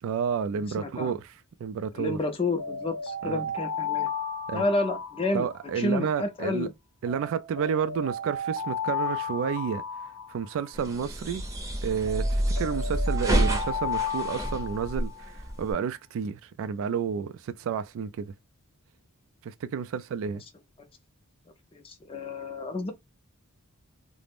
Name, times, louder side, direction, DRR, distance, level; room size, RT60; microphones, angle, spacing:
voice 1, 0.0-2.2 3.2-3.5 4.5-4.7 5.3-6.7 7.0-9.8 10.3-11.4 11.8-18.3 19.4-20.4, right 7 dB, 65° right, 0.3 m, -31 dB
voice 2, 0.8-1.1 1.9-4.1 4.5-5.5 5.8-6.7 21.7-22.9, left 2 dB, 25° left, 0.5 m, -30 dB
Alarm, 2.6-5.9 7.1-10.9 12.1-15.3, left 4 dB, 85° left, 0.6 m, -34 dB
sound 1, 10.7-15.7, equal, 15° right, 0.6 m, -28 dB
2.4 x 2.0 x 3.3 m
head